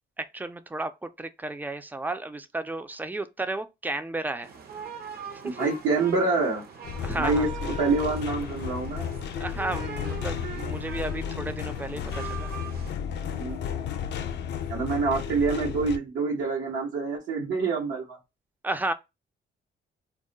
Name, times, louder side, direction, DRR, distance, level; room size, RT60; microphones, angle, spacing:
voice 1, 0.2-4.5 5.4-5.7 7.0-7.5 9.4-12.5 18.6-18.9, right 2 dB, 10° right, 0.4 m, -33 dB
sound 1, 4.4-12.9, right 7 dB, 50° right, 0.7 m, -41 dB
voice 2, 5.4-6.6 7.1-7.5 7.8-9.2 13.4-13.6 14.7-18.2, right 4 dB, 80° right, 0.9 m, -26 dB
sound 2, 6.8-16.0, left 8 dB, 60° left, 0.5 m, -33 dB
2.3 x 2.1 x 3.7 m
cardioid pair, 90°, 20 cm